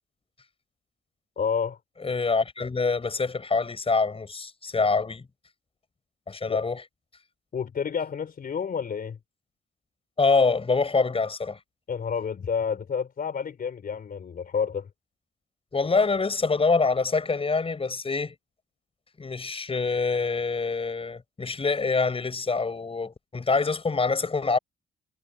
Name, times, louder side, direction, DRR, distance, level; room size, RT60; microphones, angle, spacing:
voice 1, 1.4-1.8 6.5-6.6 7.5-9.2 11.9-14.9, left 6 dB, 50° left, 4.1 m, -29 dB
voice 2, 2.0-5.3 6.3-6.8 10.2-11.6 15.7-18.3 19.2-24.6, left 4 dB, 30° left, 7.3 m, -25 dB
cardioid pair, 90°, 20 cm